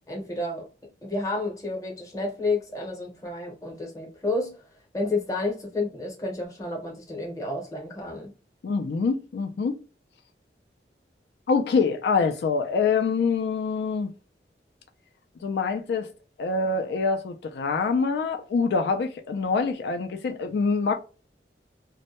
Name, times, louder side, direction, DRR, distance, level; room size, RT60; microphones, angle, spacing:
voice 1, 0.1-0.7 1.0-4.6 4.9-8.3, left 2 dB, 20° left, 0.7 m, -30 dB
voice 2, 8.6-9.8 11.5-14.1 15.4-16.1 16.4-21.0, left 4 dB, 75° left, 0.3 m, -25 dB
2.1 x 2.1 x 2.8 m
head